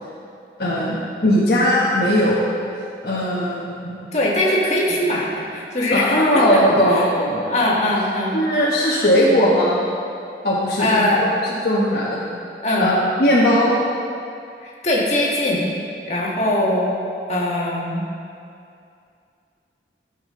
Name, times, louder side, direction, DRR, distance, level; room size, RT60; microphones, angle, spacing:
voice 1, 0.6-2.4 3.0-3.9 5.9-7.4 8.3-9.8 10.4-12.2 12.8-13.7, equal, 60° left, -7 dB, 1.2 m, -18 dB
voice 2, 4.1-6.6 6.9-7.0 7.4-8.4 10.8-11.2 12.6-13.0 14.6-15.7 16.0-17.0 17.3-18.0, left 1 dB, 40° left, -4 dB, 1.6 m, -21 dB
13.5 x 7.3 x 3.8 m, 2.6 s
head